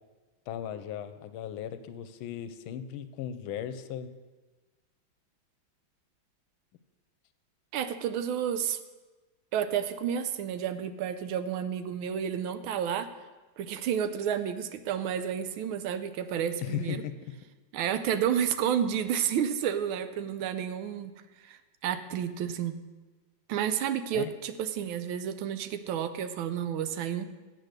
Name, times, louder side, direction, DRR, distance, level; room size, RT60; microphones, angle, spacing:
voice 1, 0.5-4.1 16.6-17.4 24.1-24.3, left 9 dB, 85° left, 11 dB, 1.4 m, -37 dB
voice 2, 7.7-8.8 9.5-13.1 13.6-17.0 17.7-21.1 21.4-22.8 23.5-27.3, right 9 dB, 80° right, 11 dB, 1.5 m, -31 dB
7.8 x 7.6 x 6.6 m, 1.3 s
omnidirectional pair, 2.2 m